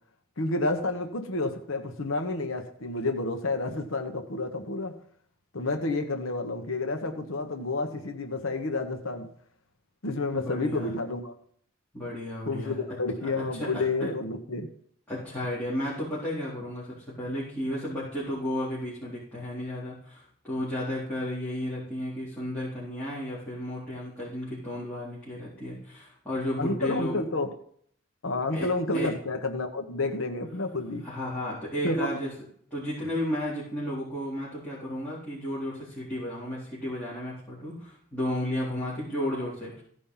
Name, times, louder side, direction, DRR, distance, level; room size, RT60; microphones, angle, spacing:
voice 1, 0.4-5.0 5.5-9.3 10.0-11.3 12.5-14.7 26.6-27.5 28.2-31.1 31.8-32.1 33.0-33.1, left 2 dB, 80° left, 6 dB, 1.1 m, -30 dB
voice 2, 10.3-10.9 11.9-12.8 13.2-14.1 15.1-27.2 28.5-28.7 28.9-29.1 31.0-32.3 32.7-39.8, left 1 dB, 10° left, -11 dB, 4.1 m, -33 dB
15.5 x 5.3 x 5.7 m, 0.62 s
head